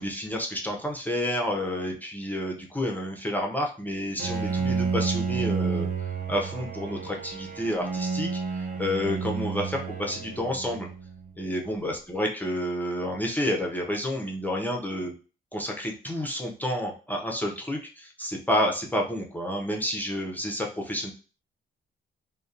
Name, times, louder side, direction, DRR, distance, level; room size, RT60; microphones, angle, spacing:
voice 1, 0.0-5.9 6.3-10.9 11.4-15.1 15.5-21.1, equal, 10° left, 0 dB, 0.5 m, -30 dB
Bowed string instrument, 4.2-11.3, right 5 dB, 45° right, 0.6 m, -30 dB
2.6 x 2.1 x 2.4 m, 0.35 s
cardioid pair, 90°, 20 cm